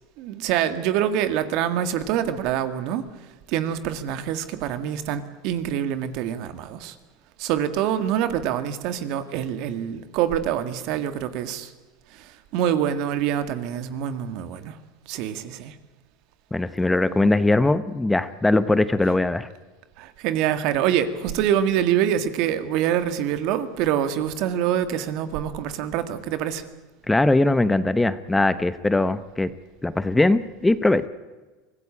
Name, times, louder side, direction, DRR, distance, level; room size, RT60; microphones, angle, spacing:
voice 1, 0.2-3.1 3.5-7.0 7.4-11.7 12.1-14.8 15.1-15.8 20.0-26.6, right 10 dB, 60° right, 11 dB, 1.9 m, -25 dB
voice 2, 16.5-19.5 27.1-29.5 29.8-31.1, left 2 dB, 10° left, 14 dB, 0.9 m, -20 dB
24.0 x 16.0 x 8.6 m, 1.3 s
supercardioid pair, 110°, 0 cm